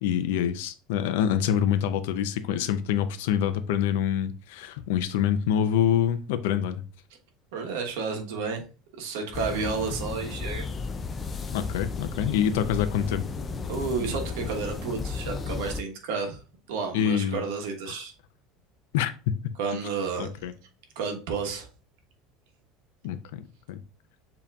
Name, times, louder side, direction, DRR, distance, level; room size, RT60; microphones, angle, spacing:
voice 1, 0.0-6.8 11.5-13.3 16.9-17.4 17.9-18.0 18.9-19.3 20.2-20.5 23.0-23.8, left 9 dB, 80° left, 0.5 m, -26 dB
voice 2, 7.5-8.6 9.0-10.6 13.7-16.4 16.7-18.1 19.6-20.3 20.9-21.7, right 5 dB, 80° right, 1.1 m, -31 dB
sound 1, 9.3-15.8, left 4 dB, 15° left, 0.3 m, -34 dB
7.1 x 2.8 x 2.3 m
cardioid pair, 180°, 0 cm